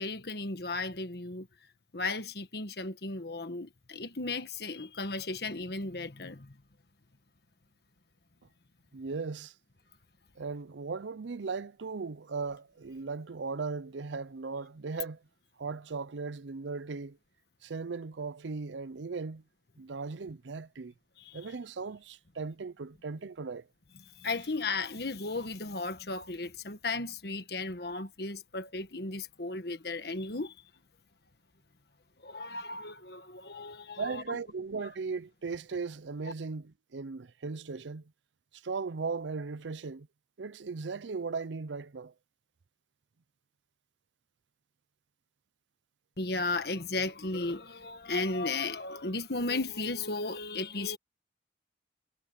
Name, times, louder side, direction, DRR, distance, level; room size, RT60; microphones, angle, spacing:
voice 1, 0.0-1.5 1.9-6.6 21.2-21.5 24.0-30.7 32.2-34.4 46.2-51.0, left 3 dB, 60° left, 1.5 m, -35 dB
voice 2, 8.9-9.5 10.4-15.2 15.6-17.2 17.6-19.4 19.8-20.9 21.3-23.7 34.0-38.1 38.6-40.1 40.4-42.1, right 4 dB, 90° right, 0.6 m, -37 dB
head